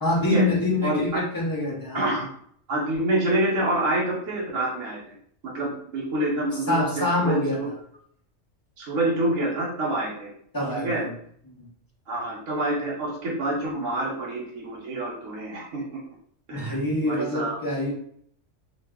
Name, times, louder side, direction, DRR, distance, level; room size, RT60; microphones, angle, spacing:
voice 1, 0.0-2.1 6.7-7.6 10.5-11.1 11.6-11.7 16.5-17.9, left 1 dB, 25° left, -3 dB, 0.4 m, -25 dB
voice 2, 0.8-1.2 1.9-2.3 2.7-5.1 5.4-7.7 8.8-10.3 10.7-11.0 12.1-16.0 16.5-16.8 17.0-17.6, right 1 dB, 90° right, -4 dB, 1.1 m, -27 dB
2.4 x 2.3 x 3.5 m, 0.65 s
omnidirectional pair, 1.3 m